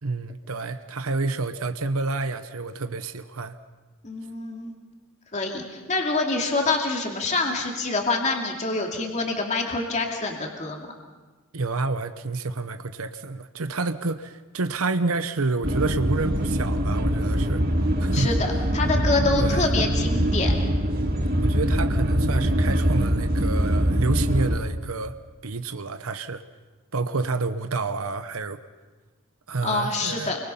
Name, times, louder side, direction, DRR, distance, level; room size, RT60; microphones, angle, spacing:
voice 1, 0.0-3.6 11.5-17.6 18.0-18.3 19.4-19.7 21.4-25.2 25.4-26.4 26.9-28.6 29.5-30.3, right 3 dB, 85° right, 10 dB, 0.9 m, -29 dB
voice 2, 4.0-4.7 5.3-10.9 18.1-20.5 29.6-30.4, left 3 dB, 35° left, 1 dB, 2.4 m, -26 dB
sound 1, 15.6-24.6, equal, 45° right, 1.9 m, -23 dB
29.0 x 23.5 x 5.5 m, 1.3 s
head